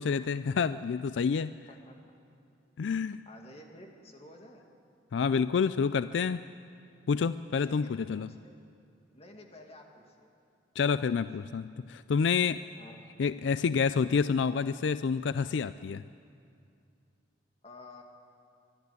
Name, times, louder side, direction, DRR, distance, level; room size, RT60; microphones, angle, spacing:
voice 1, 0.0-1.5 2.8-3.2 5.1-6.4 7.1-8.3 10.8-12.6 13.2-16.0, left 5 dB, 80° left, 14 dB, 0.4 m, -28 dB
voice 2, 3.3-4.6 7.7-8.6 9.1-10.3 12.8-13.0 17.6-18.0, left 1 dB, 35° left, 2 dB, 2.2 m, -51 dB
23.5 x 12.0 x 9.5 m, 2.4 s
head